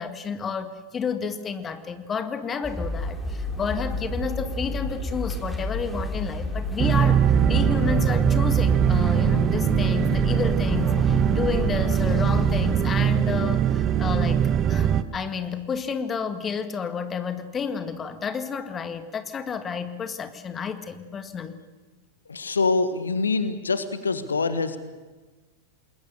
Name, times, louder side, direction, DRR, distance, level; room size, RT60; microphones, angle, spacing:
voice 1, 0.0-14.4 14.7-21.6, left 6 dB, 20° left, 9 dB, 1.9 m, -31 dB
sound 1, 2.6-12.8, left 1 dB, ahead, 3.9 m, -30 dB
sound 2, 6.8-15.0, right 9 dB, 30° right, 1.1 m, -21 dB
voice 2, 22.3-24.8, left 4 dB, 75° left, 11 dB, 1.5 m, -25 dB
28.5 x 21.5 x 6.9 m, 1.3 s
figure-of-eight pair, 90°, 0 cm